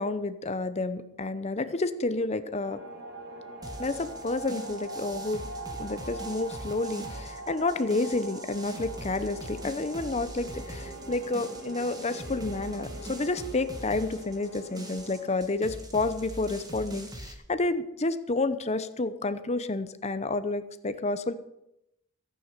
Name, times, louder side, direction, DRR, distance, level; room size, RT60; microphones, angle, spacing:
voice 1, 0.0-2.8 3.8-5.4 5.8-21.3, left 2 dB, 30° left, 12 dB, 0.8 m, -30 dB
sound 1, 2.6-15.4, right 2 dB, 50° right, 2.9 m, -42 dB
sound 2, 3.6-17.3, right 1 dB, 15° right, 1.7 m, -43 dB
14.5 x 9.5 x 6.8 m, 0.85 s
head